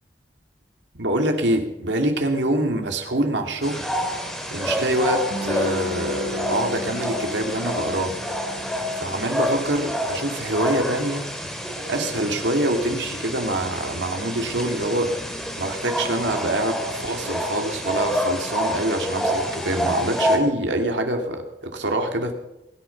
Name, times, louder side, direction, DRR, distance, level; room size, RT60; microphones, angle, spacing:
voice 1, 0.9-3.9 4.5-8.2 8.9-11.3 11.9-22.3, right 1 dB, 80° right, 4 dB, 2.6 m, -25 dB
sound 1, 3.6-20.4, equal, ahead, 2.4 m, -28 dB
Electric guitar / Strum, 5.3-10.7, left 2 dB, 75° left, 5.7 m, -35 dB
21.0 x 10.5 x 5.9 m, 0.90 s
head